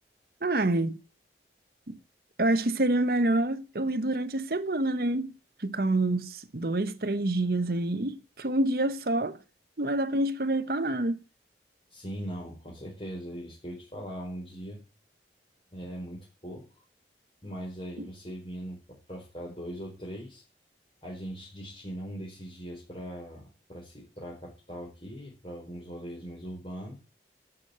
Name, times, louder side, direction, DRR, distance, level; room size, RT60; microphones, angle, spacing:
voice 1, 0.4-1.0 1.9-2.0 2.4-5.3 5.6-9.4 9.8-11.2, right 2 dB, 55° right, 1.0 m, -27 dB
voice 2, 11.9-14.8 15.7-16.6 17.4-20.4 21.0-27.0, equal, 30° left, 5.0 m, -40 dB
13.0 x 7.4 x 8.6 m
head